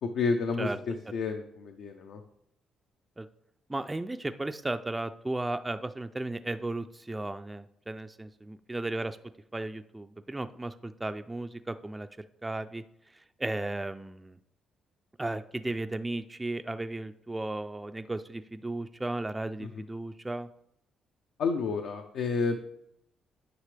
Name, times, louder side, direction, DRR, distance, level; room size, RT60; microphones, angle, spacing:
voice 1, 0.0-2.2 19.6-19.8 21.4-22.6, left 4 dB, 75° left, 4 dB, 0.6 m, -30 dB
voice 2, 3.7-9.2 9.5-12.1 12.4-12.8 13.4-14.4 15.2-20.5, right 2 dB, 15° right, 9 dB, 0.3 m, -35 dB
9.5 x 5.9 x 3.3 m, 0.76 s
cardioid pair, 90°, 0 cm